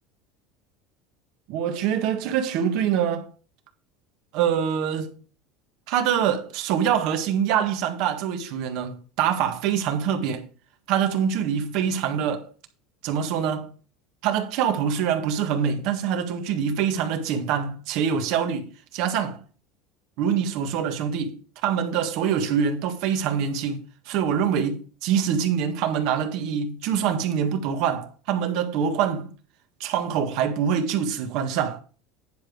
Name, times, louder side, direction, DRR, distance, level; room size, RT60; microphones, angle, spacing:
voice 1, 1.5-3.3 4.3-5.1 5.9-10.5 10.9-12.5 13.0-13.7 14.2-19.4 20.2-29.3 29.8-31.8, right 8 dB, 65° right, 1.7 m, -25 dB
10.5 x 5.2 x 4.9 m
supercardioid pair, 135°, 0 cm